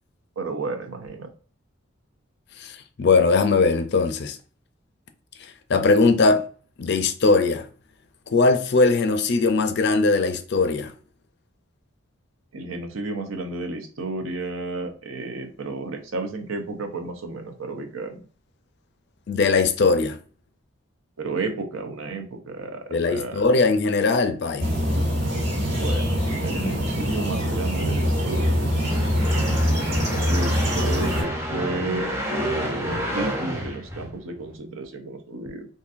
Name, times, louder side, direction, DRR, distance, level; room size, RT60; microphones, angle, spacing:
voice 1, 0.4-1.3 12.5-18.2 21.2-23.5 25.7-28.7 30.3-35.7, right 3 dB, 75° right, 0.6 m, -32 dB
voice 2, 2.6-4.4 5.4-6.4 6.8-7.7 8.3-10.9 19.3-20.2 22.9-24.7, left 3 dB, 55° left, 0.4 m, -20 dB
sound 1, 24.6-31.2, equal, 55° right, 1.3 m, -24 dB
sound 2, 27.0-34.6, equal, 10° right, 0.5 m, -31 dB
3.8 x 2.5 x 2.5 m
head